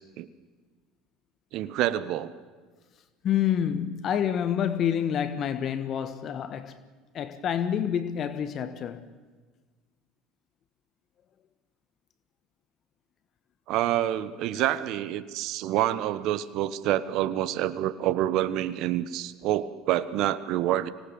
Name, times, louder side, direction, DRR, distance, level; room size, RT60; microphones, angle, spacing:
voice 1, 1.5-2.3 13.7-20.9, right 13 dB, 60° right, 1.1 m, -27 dB
voice 2, 3.2-6.8 7.1-9.0 14.5-14.6, left 9 dB, 50° left, 1.3 m, -28 dB
25.5 x 19.0 x 7.0 m
hypercardioid pair, 70°, 0 cm